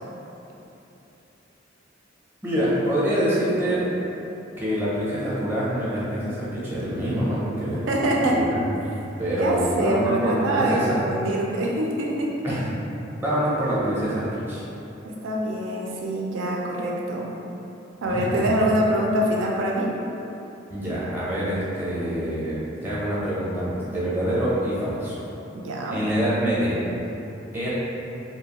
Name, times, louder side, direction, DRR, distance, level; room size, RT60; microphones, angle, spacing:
voice 1, 2.4-3.8 4.6-7.9 8.2-8.6 9.2-11.0 12.4-12.7 13.2-14.6 18.1-18.5 20.7-25.2 25.9-26.8 27.5-27.7, equal, 10° right, -8 dB, 0.6 m, -25 dB
voice 2, 7.9-8.4 9.3-12.4 15.0-17.3 18.0-19.9 25.5-26.0, right 1 dB, 85° right, -2 dB, 0.4 m, -24 dB
2.7 x 2.3 x 2.8 m, 3.0 s
head